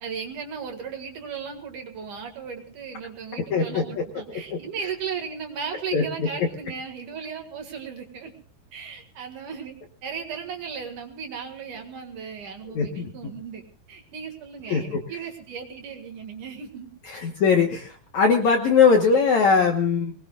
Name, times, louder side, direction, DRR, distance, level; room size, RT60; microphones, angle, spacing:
voice 1, 0.0-8.3 8.7-9.7 10.0-13.6 13.9-16.9 17.1-17.3, right 6 dB, 55° right, 4 dB, 3.0 m, -36 dB
voice 2, 3.5-4.4 5.9-6.0 12.7-13.1 14.7-15.0 17.1-20.1, left 5 dB, 60° left, 3 dB, 2.0 m, -21 dB
23.5 x 20.5 x 2.4 m, 0.40 s
omnidirectional pair, 4.8 m